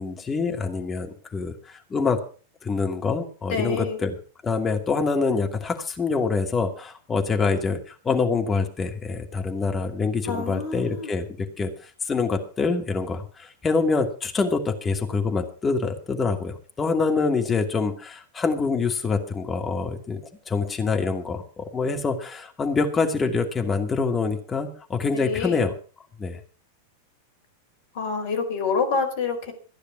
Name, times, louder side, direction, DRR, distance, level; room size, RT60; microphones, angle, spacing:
voice 1, 0.0-2.2 2.6-4.1 4.4-11.7 12.1-20.2 20.5-25.7 26.2-26.4, left 4 dB, 20° left, 4 dB, 2.5 m, -25 dB
voice 2, 3.5-4.0 10.2-11.1 25.1-25.7 27.9-29.5, left 4 dB, 50° left, 5 dB, 4.5 m, -27 dB
16.0 x 10.0 x 6.0 m, 0.39 s
figure-of-eight pair, 90°, 0 cm